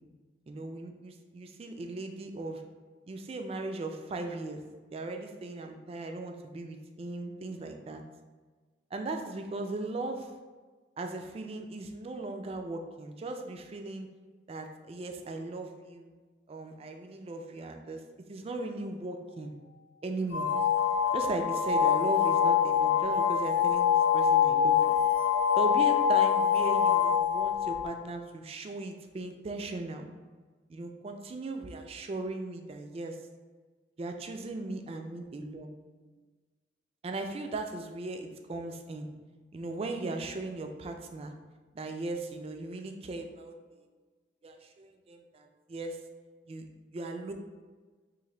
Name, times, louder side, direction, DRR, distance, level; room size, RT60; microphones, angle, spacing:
voice 1, 0.5-2.6 3.1-4.6 4.9-8.0 8.9-10.3 11.0-14.1 14.5-16.1 16.5-18.0 18.3-19.5 20.0-20.5 21.1-25.0 25.5-30.1 30.7-33.2 34.0-35.8 37.0-39.1 39.5-41.3 41.7-43.6 44.4-46.0 46.5-46.7 46.9-47.3, right 2 dB, 35° right, 4 dB, 0.3 m, -38 dB
sound 1, 20.3-27.9, left 8 dB, 80° left, 0.4 m, -25 dB
3.1 x 2.6 x 3.7 m, 1.4 s
head